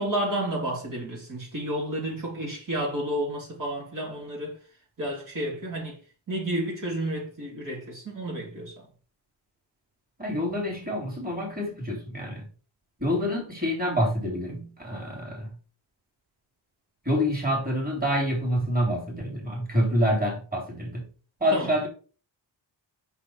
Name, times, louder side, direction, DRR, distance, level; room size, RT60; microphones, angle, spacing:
voice 1, 0.0-4.5 5.0-5.9 6.3-8.7 21.5-21.7, right 1 dB, 45° right, 3.1 m, -31 dB
voice 2, 10.2-12.5 13.0-15.5 17.1-21.0 21.4-21.9, equal, 20° right, 3.6 m, -27 dB
6.3 x 5.7 x 4.8 m
wide cardioid pair, 125°, 46 cm